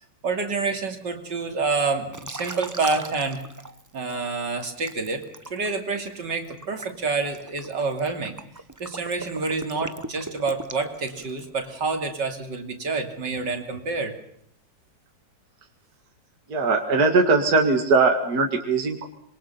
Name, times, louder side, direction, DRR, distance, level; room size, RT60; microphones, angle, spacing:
voice 1, 0.2-3.4 3.9-5.2 5.5-8.4 8.8-14.1, right 4 dB, 75° right, 4 dB, 3.4 m, -28 dB
Liquid, 2.1-4.1 4.6-11.6, right 2 dB, 15° right, 0.6 m, -39 dB
voice 2, 16.5-19.1, right 3 dB, 60° right, 3 dB, 2.6 m, -20 dB
26.5 x 23.0 x 5.8 m, 0.69 s
omnidirectional pair, 1.9 m